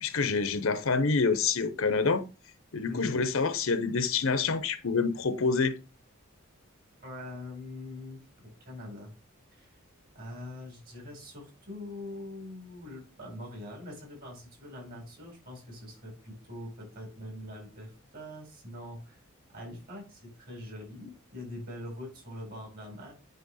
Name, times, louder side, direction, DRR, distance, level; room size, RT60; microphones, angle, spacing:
voice 1, 0.0-2.2 2.7-5.7, left 4 dB, 65° left, 0.8 m, -27 dB
voice 2, 7.0-9.1 9.5-9.8 10.1-19.2 19.5-23.1, left 1 dB, 45° right, 4.6 m, -43 dB
9.1 x 3.1 x 5.5 m
head